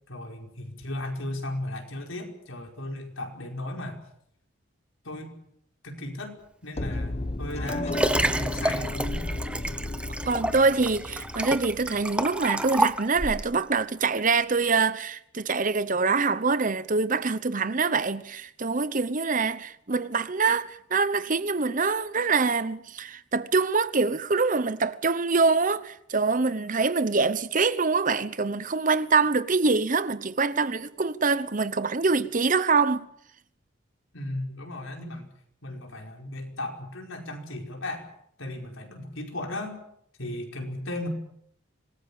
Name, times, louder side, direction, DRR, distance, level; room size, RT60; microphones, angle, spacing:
voice 1, 0.1-4.0 5.0-5.3 5.8-6.4 6.6-9.2 34.1-35.3 35.6-38.1 38.4-39.8 40.2-41.1, left 1 dB, 80° left, 5.2 m, -36 dB
sound 1, 6.7-12.7, left 2 dB, 30° left, 1.0 m, -34 dB
Liquid, 7.3-13.5 14.2-14.3, right 1 dB, 5° right, 0.9 m, -29 dB
voice 2, 10.3-33.1, right 4 dB, 40° right, 0.9 m, -25 dB
26.0 x 20.0 x 7.2 m
head